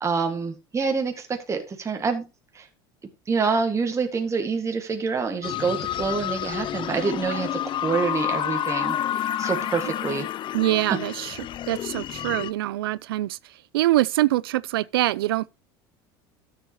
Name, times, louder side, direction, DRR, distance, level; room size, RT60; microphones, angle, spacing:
voice 1, 0.0-2.2 2.6-2.7 3.3-9.0 9.4-10.3, right 5 dB, 25° right, 1.9 m, -26 dB
sound 1, 5.4-12.5, left 11 dB, 45° left, 0.6 m, -29 dB
voice 2, 10.5-11.4 11.7-13.4 13.7-15.6, right 16 dB, 85° right, 0.5 m, -24 dB
13.0 x 7.7 x 3.0 m
hypercardioid pair, 85°, 12 cm